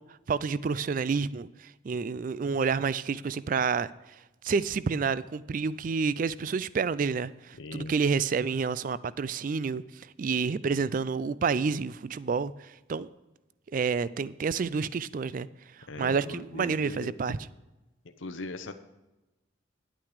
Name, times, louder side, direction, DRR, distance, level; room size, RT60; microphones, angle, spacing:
voice 1, 0.3-3.9 4.4-13.1 13.7-15.5 16.0-17.4, right 5 dB, 45° right, 18 dB, 0.3 m, -29 dB
voice 2, 7.6-7.9 15.9-17.1 18.2-18.7, left 2 dB, 85° left, 9 dB, 0.8 m, -39 dB
10.5 x 8.9 x 4.9 m, 1.0 s
head